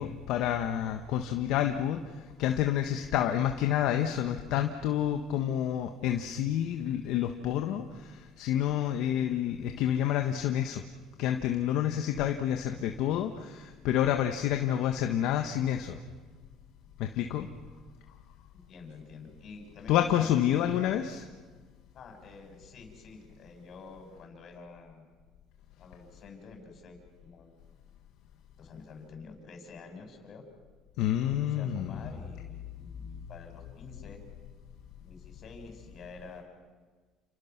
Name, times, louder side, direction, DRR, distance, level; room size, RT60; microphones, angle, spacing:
voice 1, 0.0-10.8 11.2-16.0 17.0-17.5 19.9-21.2 31.0-31.9, left 11 dB, 75° left, 5 dB, 1.5 m, -29 dB
voice 2, 18.7-20.6 21.9-25.1 25.8-27.5 28.6-30.4 31.2-34.2 35.0-36.4, left 4 dB, 55° left, 4 dB, 7.0 m, -48 dB
30.0 x 28.0 x 6.1 m, 1.4 s
supercardioid pair, 85°, 0 cm